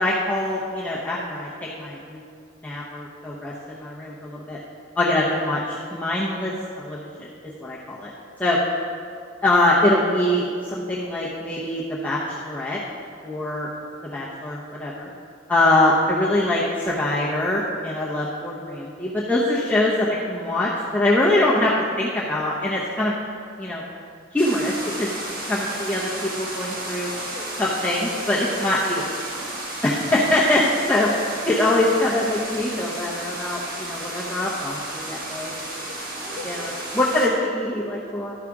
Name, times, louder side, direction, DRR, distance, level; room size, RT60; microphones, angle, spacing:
voice 1, 0.0-1.5 1.8-2.2 2.6-4.6 5.0-7.3 7.6-8.1 8.4-8.6 9.4-12.8 13.2-13.7 14.0-15.1 15.5-19.9 20.4-23.1 23.6-23.8 24.3-24.7 25.0-25.2 25.5-27.1 27.6-29.1 29.8-31.1 31.5-35.5 36.4-38.3, left 1 dB, 10° left, -7 dB, 0.8 m, -23 dB
sound 1, 24.4-37.3, right 1 dB, 50° right, 1.6 m, -33 dB
12.0 x 4.9 x 4.8 m, 2.3 s
head